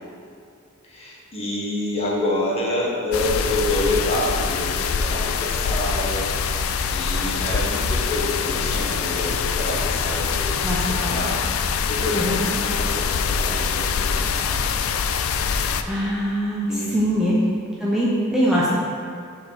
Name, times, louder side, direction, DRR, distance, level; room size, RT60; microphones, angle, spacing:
voice 1, 0.9-6.6 6.9-14.5 16.7-17.4, left 1 dB, 30° left, -5 dB, 1.5 m, -28 dB
sound 1, 3.1-15.8, left 6 dB, 70° left, 0.4 m, -24 dB
voice 2, 10.6-11.4 12.1-12.5 15.9-17.4 17.8-18.7, equal, 5° right, -8 dB, 0.8 m, -23 dB
6.2 x 4.6 x 5.9 m, 2.4 s
head